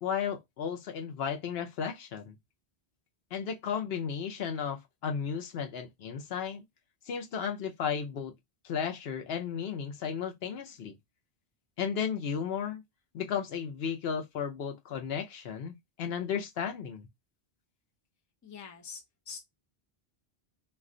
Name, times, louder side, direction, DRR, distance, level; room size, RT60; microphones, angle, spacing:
voice 1, 0.0-2.3 3.3-6.6 7.0-8.3 8.6-11.0 11.8-12.8 13.1-17.1, left 7 dB, 70° left, 0.8 m, -34 dB
voice 2, 18.4-19.4, left 6 dB, 20° left, 0.5 m, -45 dB
2.4 x 2.2 x 3.6 m
omnidirectional pair, 1.1 m